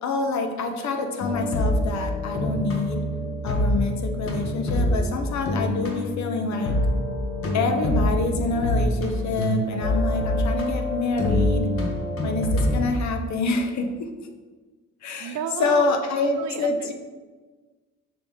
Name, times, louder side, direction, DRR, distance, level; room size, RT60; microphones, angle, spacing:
voice 1, 0.0-3.0 3.4-6.8 7.5-11.7 12.2-14.1 15.0-16.9, left 3 dB, 65° left, 5 dB, 0.8 m, -27 dB
sound 1, 1.2-12.9, left 1 dB, 45° left, 1.3 m, -25 dB
voice 2, 15.2-15.9 16.2-16.9, right 9 dB, 70° right, 10 dB, 0.6 m, -32 dB
6.2 x 4.7 x 3.6 m, 1.4 s
cardioid pair, 90°, 30 cm